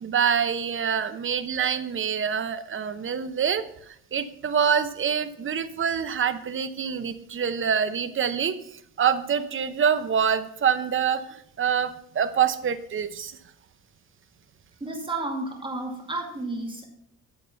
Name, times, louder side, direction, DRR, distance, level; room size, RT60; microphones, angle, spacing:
voice 1, 0.0-13.4, right 7 dB, 40° right, 12 dB, 0.8 m, -26 dB
voice 2, 14.8-16.9, right 2 dB, 15° right, 1 dB, 2.3 m, -32 dB
11.5 x 4.2 x 6.9 m, 0.72 s
cardioid pair, 120°, 31 cm